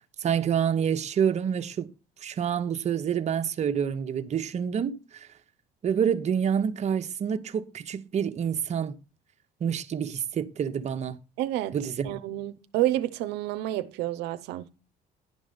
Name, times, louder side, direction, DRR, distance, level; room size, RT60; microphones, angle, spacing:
voice 1, 0.2-1.9 2.2-5.3 5.8-8.9 9.6-11.2 11.7-12.2, right 8 dB, 40° right, 0.8 m, -27 dB
voice 2, 11.4-11.8 12.0-14.7, right 14 dB, 90° right, 0.6 m, -29 dB
11.0 x 5.3 x 5.1 m
cardioid pair, 110°, 17 cm